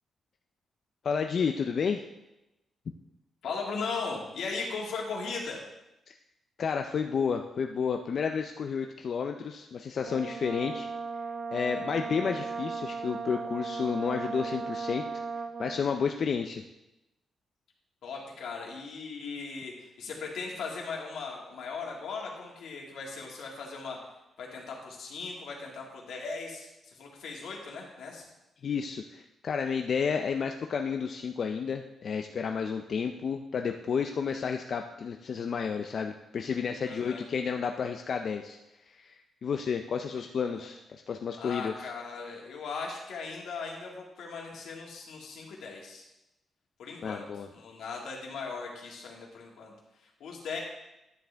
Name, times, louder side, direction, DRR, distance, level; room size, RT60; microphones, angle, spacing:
voice 1, 1.0-2.0 6.6-10.9 11.5-15.0 15.6-16.6 28.6-38.6 38.9-40.8 41.1-41.7 47.0-47.5, left 6 dB, 45° left, 5 dB, 0.4 m, -31 dB
voice 2, 3.4-5.6 18.0-24.0 24.4-28.3 36.8-37.2 41.4-46.0 46.8-47.3 47.5-50.6, left 4 dB, 85° left, -1 dB, 2.0 m, -38 dB
Brass instrument, 10.0-15.9, right 5 dB, 75° right, 0.7 m, -36 dB
10.5 x 7.3 x 3.4 m, 0.93 s
wide cardioid pair, 155°, 0 cm